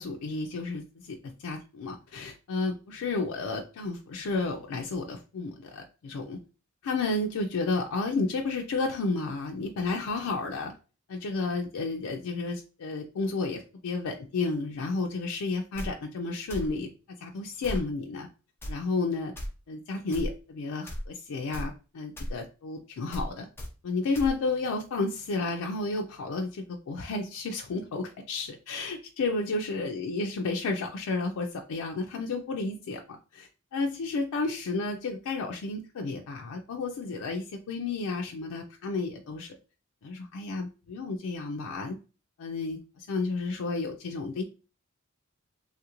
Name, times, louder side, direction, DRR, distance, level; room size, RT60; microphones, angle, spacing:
voice 1, 0.0-6.4 6.8-10.7 11.1-16.9 17.2-18.3 18.7-19.3 19.7-23.5 23.8-39.6 40.0-42.0 42.4-44.4, left 3 dB, 90° left, 2 dB, 0.4 m, -32 dB
sound 1, 15.7-15.9 16.5-16.7 17.6-17.9 18.6-18.7 19.3-19.5 20.1-20.3 20.9-21.1 21.5-21.7 22.2-22.3 23.1-23.3 23.6-23.7 24.1-24.3, equal, 10° left, 0.6 m, -34 dB
3.2 x 2.4 x 2.9 m, 0.34 s
head